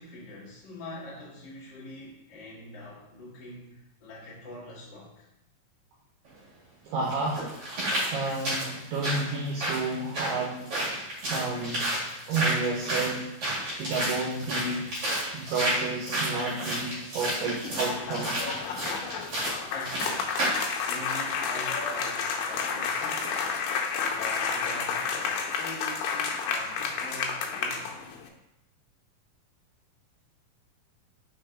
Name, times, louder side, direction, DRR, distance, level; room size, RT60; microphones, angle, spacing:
voice 1, 0.0-5.3 19.7-20.4 20.8-28.0, left 1 dB, 45° left, -7 dB, 1.5 m, -44 dB
sound 1, 6.3-6.4 7.1-20.7 21.1-21.2, right 1 dB, 40° right, 3.0 m, -31 dB
voice 2, 6.8-7.6 8.1-10.6 11.3-11.9 12.3-14.9 15.3-18.3, right 3 dB, 75° right, -4 dB, 2.3 m, -31 dB
sound 2, 17.3-28.3, left 5 dB, 80° left, 2.3 m, -31 dB
5.6 x 4.6 x 3.7 m, 0.87 s
omnidirectional pair, 4.3 m